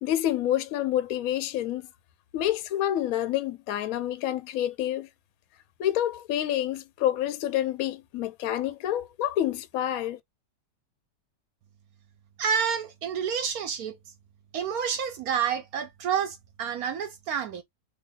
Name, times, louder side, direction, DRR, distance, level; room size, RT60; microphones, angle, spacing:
voice 1, 0.0-1.9 2.3-5.1 5.8-10.2, left 12 dB, 70° left, 0.9 m, -28 dB
voice 2, 12.4-14.0 14.5-17.6, right 7 dB, 70° right, 1.0 m, -29 dB
2.8 x 2.6 x 3.8 m
omnidirectional pair, 1.9 m